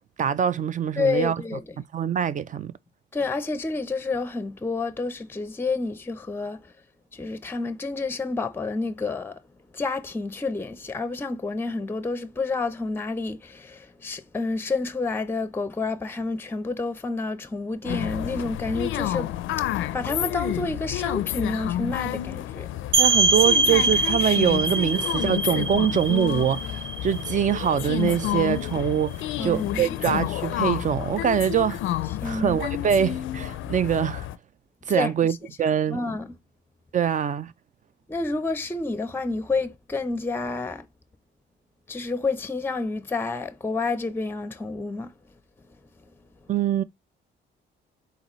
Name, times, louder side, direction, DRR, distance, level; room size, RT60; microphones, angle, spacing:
voice 1, 0.2-1.4 1.9-2.7 23.0-31.8 32.2-34.3 34.9-36.0 36.9-37.5 46.5-46.8, right 9 dB, 40° right, 0.4 m, -24 dB
voice 2, 1.0-1.8 3.1-6.7 7.1-9.4 9.7-22.7 29.4-30.0 32.2-32.6 34.9-35.1 35.9-36.4 38.1-40.9 41.9-45.1, left 3 dB, 10° left, 0.5 m, -29 dB
sound 1, 17.8-34.4, left 13 dB, 80° left, 0.4 m, -30 dB
sound 2, 22.9-28.4, right 3 dB, 80° right, 0.8 m, -24 dB
4.0 x 3.9 x 3.0 m
cardioid pair, 90°, 20 cm